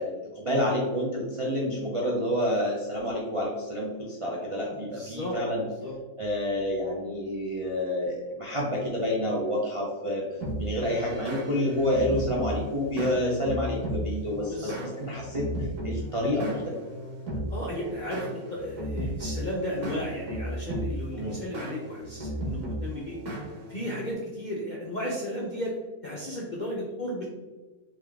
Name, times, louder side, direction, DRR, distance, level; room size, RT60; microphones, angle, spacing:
voice 1, 0.0-5.6 6.2-10.3 10.6-15.5 15.8-16.8 21.1-21.4, left 1 dB, 50° right, -4 dB, 0.3 m, -28 dB
voice 2, 4.7-5.9 14.4-14.9 17.5-23.2 23.7-25.8 26.0-27.2, equal, 55° left, -4 dB, 0.5 m, -34 dB
sound 1, 10.4-24.1, equal, 85° right, 1.6 m, -35 dB
3.6 x 3.0 x 3.4 m, 1.3 s
omnidirectional pair, 1.6 m